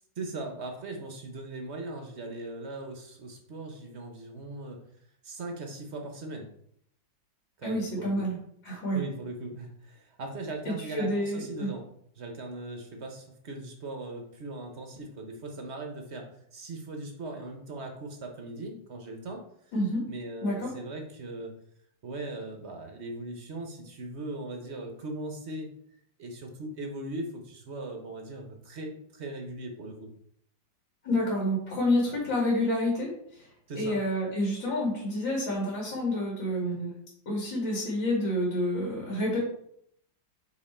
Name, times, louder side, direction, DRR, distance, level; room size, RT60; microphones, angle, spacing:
voice 1, 0.2-4.8 5.2-6.5 7.6-8.2 8.9-11.8 12.2-19.4 20.1-21.5 22.0-25.8 26.2-30.1 33.7-34.0, right 2 dB, 50° right, 3 dB, 0.9 m, -39 dB
voice 2, 7.6-8.3 8.6-9.0 10.9-11.7 19.7-20.0 20.4-20.7 31.0-33.5 33.8-36.9 37.3-39.4, left 1 dB, 85° left, -5 dB, 2.8 m, -28 dB
5.5 x 4.3 x 4.2 m, 0.69 s
omnidirectional pair, 2.1 m